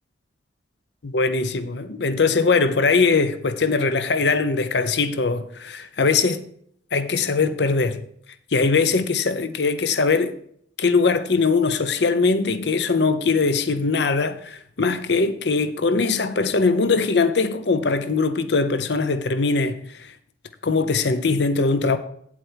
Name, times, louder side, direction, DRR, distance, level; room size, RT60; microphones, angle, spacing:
voice 1, 1.0-6.4 6.9-8.0 8.5-10.3 10.8-20.1 20.6-22.0, left 4 dB, 60° left, 0.7 m, -21 dB
9.0 x 8.3 x 4.5 m
head